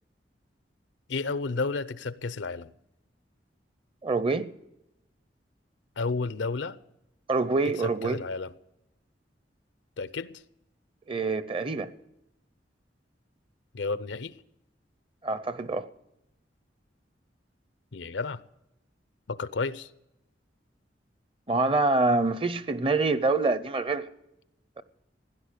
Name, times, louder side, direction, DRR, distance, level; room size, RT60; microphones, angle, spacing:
voice 1, 1.1-2.7 6.0-6.8 7.8-8.5 10.0-10.4 13.7-14.4 17.9-18.4 19.3-19.9, left 4 dB, 90° left, 0.6 m, -32 dB
voice 2, 4.0-4.5 7.3-8.2 11.1-11.9 15.2-15.9 21.5-24.1 24.8-24.9, right 3 dB, 30° right, 0.6 m, -26 dB
16.5 x 10.5 x 6.7 m
head